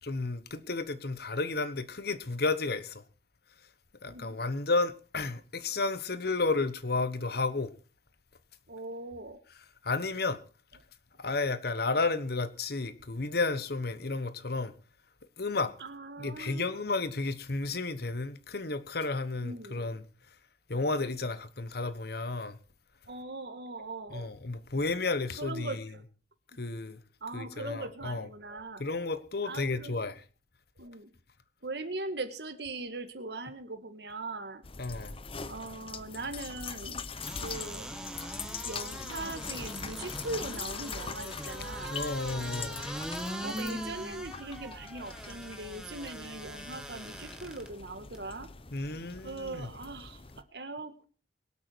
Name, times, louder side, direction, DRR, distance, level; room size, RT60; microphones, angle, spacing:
voice 1, 0.0-3.0 4.0-7.7 9.8-10.4 11.2-14.7 15.4-15.7 16.2-20.0 20.7-22.6 24.1-25.9 26.6-27.0 27.3-28.3 28.8-30.2 34.8-35.1 41.9-42.8 48.7-49.7, left 3 dB, 60° left, 1.2 m, -32 dB
voice 2, 4.1-4.4 8.7-9.4 15.8-16.7 19.4-19.9 23.1-24.3 25.4-26.0 27.2-29.0 29.4-30.0 30.8-31.1 31.6-34.7 35.5-37.0 37.4-37.9 38.6-42.0 43.4-48.5 49.2-51.1, right 2 dB, 65° right, 1.9 m, -40 dB
sound 1, 34.6-50.4, left 5 dB, 30° left, 0.9 m, -42 dB
sound 2, 37.2-47.7 48.1-48.2, right 1 dB, 5° right, 1.8 m, -41 dB
23.5 x 8.5 x 4.6 m
head